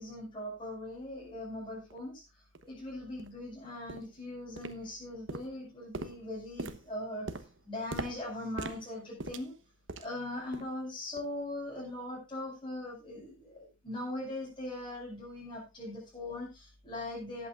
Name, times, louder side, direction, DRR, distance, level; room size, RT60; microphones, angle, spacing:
voice 1, 0.0-2.2 2.6-7.3 7.7-9.5 10.0-17.5, left 1 dB, 25° left, -4 dB, 6.0 m, -40 dB
sound 1, 1.9-2.0 2.5-2.7 3.2-3.4 3.9-4.2 4.6-5.0 5.3-10.2 10.5-10.8 11.2-11.3 11.9-12.0, right 2 dB, 65° right, 1.1 m, -42 dB
19.0 x 8.8 x 2.5 m, 0.26 s
head